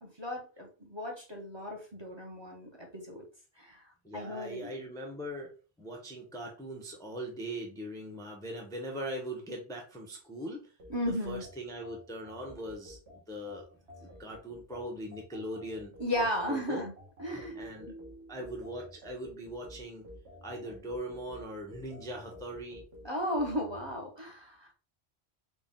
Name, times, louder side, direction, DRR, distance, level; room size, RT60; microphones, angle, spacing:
voice 1, 0.0-3.2 3.6-4.7 10.9-11.4 16.0-16.9 17.2-17.5 23.0-24.7, equal, 30° right, -1 dB, 0.8 m, -35 dB
voice 2, 4.0-5.5 5.8-10.7 11.2-13.0 13.3-13.7 14.0-16.9 17.3-20.1 20.4-22.8, equal, 5° left, 0 dB, 0.6 m, -40 dB
sound 1, 10.8-24.0, left 1 dB, 75° right, 1.4 m, -52 dB
4.1 x 2.2 x 3.7 m, 0.36 s
omnidirectional pair, 1.1 m